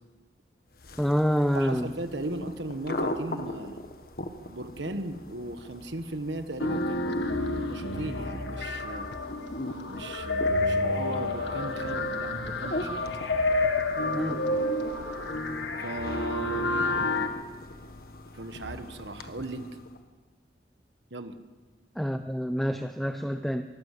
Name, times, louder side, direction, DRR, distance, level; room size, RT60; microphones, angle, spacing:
sound 1, 0.7-20.0, left 1 dB, 55° left, 1.4 m, -41 dB
voice 1, 1.0-1.9 14.1-14.4 22.0-23.6, equal, ahead, 7 dB, 0.6 m, -27 dB
voice 2, 1.5-3.8 4.5-9.1 9.9-12.9 15.8-16.7 18.3-19.7 21.1-21.4, right 2 dB, 85° right, 9 dB, 1.3 m, -37 dB
sound 2, 6.6-17.3, left 2 dB, 85° left, 1.9 m, -29 dB
23.5 x 15.0 x 8.3 m, 1.4 s
head